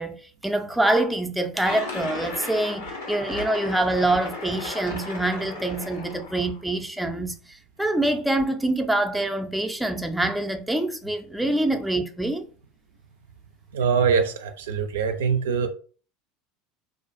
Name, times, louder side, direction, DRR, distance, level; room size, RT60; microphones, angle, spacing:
voice 1, 0.0-12.5, right 1 dB, 5° right, 0.4 m, -25 dB
sound 1, 1.6-6.6, left 3 dB, 85° left, 0.7 m, -35 dB
voice 2, 13.7-15.7, right 6 dB, 80° right, 0.3 m, -23 dB
2.4 x 2.2 x 2.5 m
hypercardioid pair, 85°, 0 cm